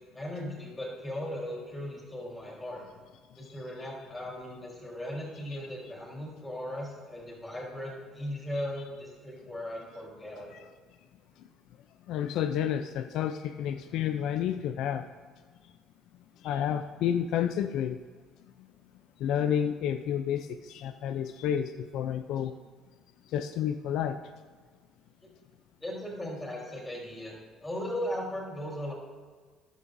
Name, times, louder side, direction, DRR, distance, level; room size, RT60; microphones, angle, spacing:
voice 1, 0.1-2.8 3.3-10.7 25.2-25.3 25.8-27.4 27.6-28.9, left 1 dB, 15° left, -2 dB, 3.7 m, -37 dB
voice 2, 12.1-15.1 15.6-15.7 16.4-18.0 19.2-22.6 23.3-24.2, left 9 dB, 70° left, 9 dB, 0.4 m, -30 dB
14.5 x 11.0 x 2.6 m, 1.5 s
cardioid pair, 115°, 0 cm